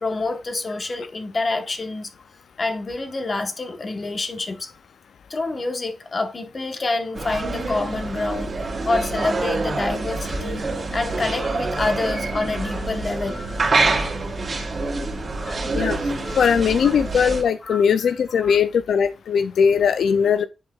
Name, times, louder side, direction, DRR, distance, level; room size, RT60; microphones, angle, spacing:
voice 1, 0.0-2.1 2.6-4.8 5.3-10.7 10.9-13.6 13.9-14.1 15.3-15.6 16.2-16.5 16.8-17.0 17.6-18.1 18.4-18.6, left 3 dB, 40° left, 1.0 m, -27 dB
sound 1, 7.1-17.4, right 3 dB, 50° right, 2.4 m, -26 dB
voice 2, 16.4-20.4, left 7 dB, 90° left, 0.3 m, -19 dB
10.5 x 4.5 x 2.3 m
wide cardioid pair, 100°, 0 cm